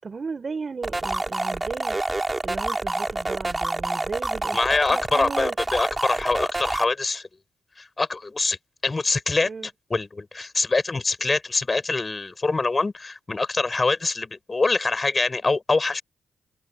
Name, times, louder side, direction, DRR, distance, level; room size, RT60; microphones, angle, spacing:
voice 1, 0.0-5.6 9.4-9.7, right 4 dB, 45° right, 4.5 m, -35 dB
sound 1, 0.8-6.8, right 2 dB, 20° right, 6.9 m, -27 dB
voice 2, 4.5-7.2 7.8-8.6 8.8-9.5 9.9-16.0, left 3 dB, 35° left, 6.1 m, -24 dB
supercardioid pair, 55°, 0 cm